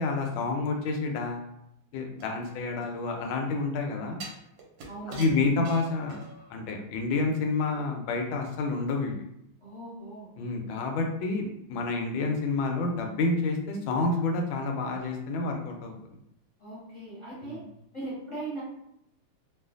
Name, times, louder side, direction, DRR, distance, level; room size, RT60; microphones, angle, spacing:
voice 1, 0.0-1.5 1.9-4.2 5.1-6.2 6.5-9.2 10.4-15.9 17.4-17.6, left 3 dB, 80° left, 2 dB, 1.3 m, -29 dB
sound 1, 2.2-3.3 4.2-6.5 6.9-7.0, right 3 dB, 70° right, 1.2 m, -45 dB
voice 2, 4.8-5.4 9.6-10.3 16.6-17.6 17.9-18.6, right 2 dB, 20° left, -10 dB, 0.8 m, -39 dB
3.1 x 2.4 x 2.4 m, 0.78 s
omnidirectional pair, 2.3 m